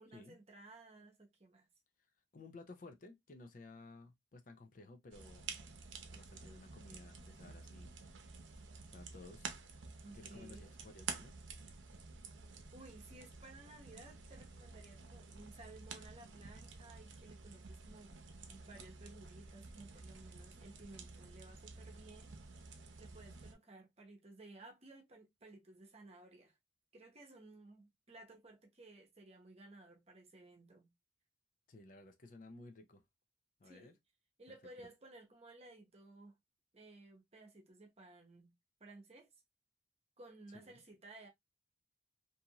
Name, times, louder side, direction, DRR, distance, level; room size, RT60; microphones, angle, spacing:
voice 1, 0.0-1.7 10.0-10.8 12.7-22.4 23.0-26.6 26.9-30.9 33.6-34.0 34.4-36.4 36.7-38.5 38.8-39.3 40.2-41.3, right 2 dB, 35° right, 0.8 m, -57 dB
voice 2, 2.3-5.5 6.1-7.9 8.9-9.5 10.1-11.3 31.7-33.0 33.6-33.9 34.5-34.9 40.5-40.8, left 2 dB, 45° left, 0.5 m, -55 dB
sound 1, 5.1-23.5, right 5 dB, 90° right, 0.6 m, -51 dB
2.7 x 2.5 x 2.7 m
head